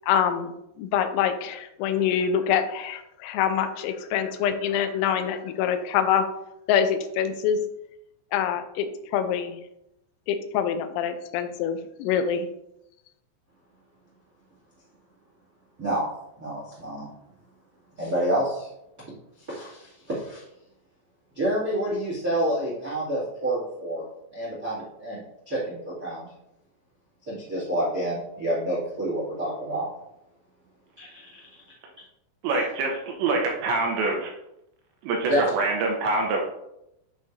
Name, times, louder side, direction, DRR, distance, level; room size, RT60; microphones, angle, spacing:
voice 1, 0.1-6.3 6.7-7.6 8.3-9.6 10.3-12.5, left 8 dB, 90° left, 9 dB, 3.3 m, -25 dB
voice 2, 16.4-17.1 18.0-18.7 19.5-20.4 21.3-24.0 24.3-26.3 27.2-29.9 31.0-31.2 32.5-32.6 35.3-35.5, right 1 dB, 45° right, -8 dB, 1.1 m, -28 dB
voice 3, 32.4-34.3 35.0-36.4, right 3 dB, 80° right, 0 dB, 2.7 m, -25 dB
11.0 x 4.7 x 2.6 m, 0.84 s
omnidirectional pair, 5.9 m